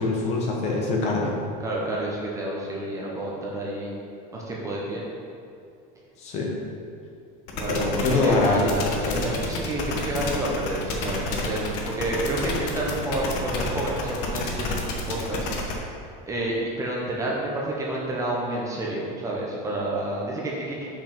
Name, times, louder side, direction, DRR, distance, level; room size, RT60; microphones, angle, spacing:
voice 1, 0.0-1.4 6.2-6.5 7.7-8.7 9.1-9.2, left 2 dB, 35° left, -1 dB, 1.0 m, -24 dB
voice 2, 1.6-3.9 4.3-5.0 7.5-15.5 16.3-20.9, right 1 dB, 15° right, -4 dB, 0.8 m, -30 dB
sound 1, 7.5-15.7, left 3 dB, 75° left, 1.1 m, -29 dB
5.9 x 5.2 x 5.2 m, 2.5 s
cardioid pair, 175°, 20 cm